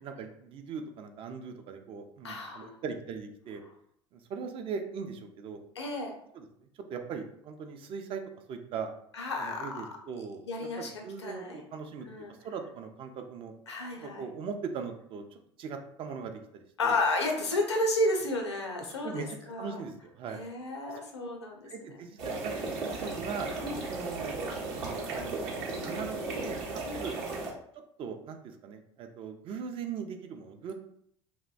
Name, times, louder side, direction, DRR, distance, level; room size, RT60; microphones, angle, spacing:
voice 1, 0.0-3.6 4.1-5.6 6.3-6.5 6.9-8.2 8.5-8.9 9.4-12.1 12.4-13.5 14.0-15.2 15.6-17.0 18.9-20.4 20.9-21.3 21.6-23.5 23.9-24.4 24.7-25.6 25.8-26.6 27.0-27.2 28.0-30.7, right 6 dB, 40° right, 6 dB, 0.4 m, -40 dB
voice 2, 2.2-2.8 5.8-6.1 9.1-9.7 10.5-11.6 12.0-12.3 13.7-14.2 16.8-19.8 20.3-21.7 23.6-23.8 26.9-27.0, left 2 dB, 80° left, 2 dB, 0.5 m, -32 dB
sound 1, 22.2-27.5, right 3 dB, 60° right, 0.7 m, -35 dB
2.5 x 2.1 x 2.3 m, 0.70 s
figure-of-eight pair, 65°, 14 cm